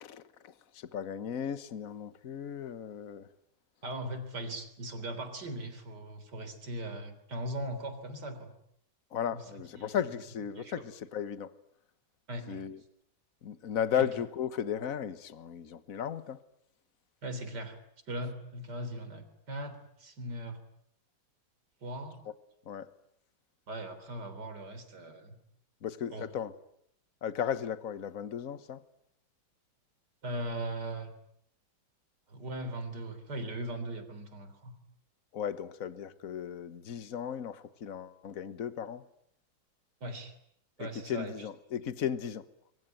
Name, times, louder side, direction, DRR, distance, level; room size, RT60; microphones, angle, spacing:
voice 1, 0.0-3.3 9.1-11.5 12.5-12.8 13.4-16.4 22.7-22.9 25.8-26.5 27.2-28.8 35.3-39.0 40.8-42.4, left 8 dB, 45° left, 1.5 m, -35 dB
voice 2, 3.8-8.5 9.3-9.4 9.8-9.9 10.6-10.8 12.3-12.6 14.0-14.1 17.2-17.8 18.1-20.6 21.8-22.2 23.7-25.4 26.1-26.3 30.2-31.1 32.3-34.7 40.0-40.3 40.8-41.5, right 1 dB, 55° right, 4.1 m, -39 dB
26.0 x 23.5 x 9.2 m
omnidirectional pair, 2.2 m